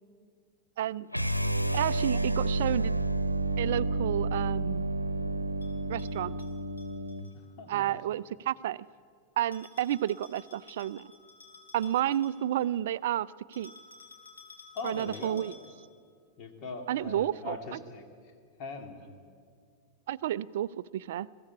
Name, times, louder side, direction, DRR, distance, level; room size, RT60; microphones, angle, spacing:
voice 1, 0.8-1.1 1.7-2.9 3.6-4.8 5.9-6.3 7.7-8.8 9.4-11.0 11.7-13.7 14.8-15.6 16.9-17.8 20.1-21.3, right 12 dB, 55° right, 20 dB, 0.4 m, -31 dB
sound 1, 1.1-7.3, right 2 dB, 90° right, 0.8 m, -30 dB
Bell, 5.6-7.3 9.5-12.8 13.5-15.9, left 4 dB, 75° left, 3.2 m, -53 dB
voice 2, 7.6-8.0 14.7-15.4 16.4-18.0 18.6-19.1, left 4 dB, 40° left, 5 dB, 2.4 m, -40 dB
21.0 x 15.0 x 8.4 m, 2.1 s
figure-of-eight pair, 90°, 0 cm